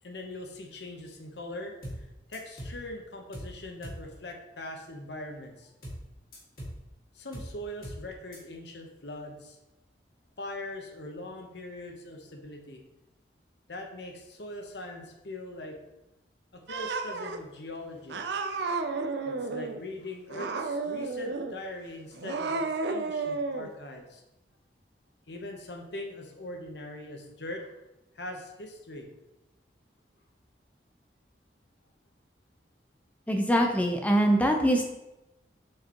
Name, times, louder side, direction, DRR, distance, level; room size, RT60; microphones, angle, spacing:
voice 1, 0.0-5.7 7.1-9.6 10.4-12.8 13.7-15.8 16.5-18.3 19.2-24.2 25.3-27.7 28.1-29.1, left 1 dB, 70° left, 3 dB, 1.0 m, -41 dB
sound 1, 1.8-2.1 2.3-2.8 3.3-3.6 3.8-4.1 5.8-6.1 6.3-6.8 7.3-7.6 7.8-8.1 8.3-8.4, equal, 55° left, 2.2 m, -40 dB
Cat, 16.7-17.4 18.1-19.8 20.3-21.6 22.1-23.7, right 3 dB, 70° right, 0.5 m, -32 dB
voice 2, 33.3-34.9, equal, 10° left, 3 dB, 0.6 m, -23 dB
7.5 x 4.8 x 3.0 m, 0.95 s
head